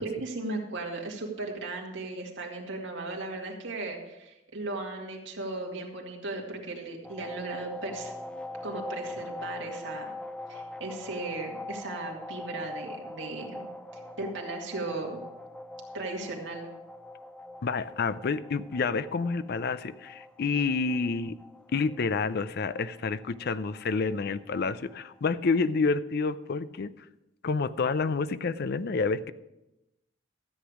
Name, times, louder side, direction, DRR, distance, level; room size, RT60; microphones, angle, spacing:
voice 1, 0.0-8.1 8.6-10.1 10.5-13.6 14.2-15.2 15.9-16.7, right 2 dB, 70° right, 0 dB, 2.2 m, -36 dB
sound 1, 7.0-25.6, left 2 dB, 5° left, 0.5 m, -43 dB
voice 2, 17.6-21.4 21.7-26.9 27.4-29.3, left 4 dB, 55° left, 15 dB, 0.5 m, -29 dB
13.0 x 8.2 x 4.9 m, 0.92 s
head